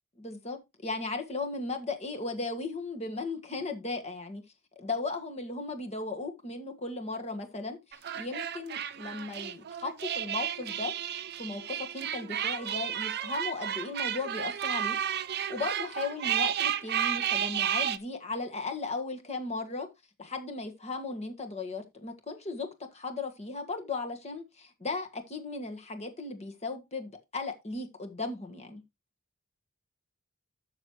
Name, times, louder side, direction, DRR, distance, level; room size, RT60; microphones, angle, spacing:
voice 1, 0.2-0.6 0.8-4.4 4.7-10.9 11.4-15.0 15.5-19.9 20.2-28.8, left 3 dB, 30° left, 1.6 m, -36 dB
sound 1, 7.9-18.0, right 10 dB, 50° right, 0.6 m, -32 dB
12.5 x 6.4 x 3.1 m
head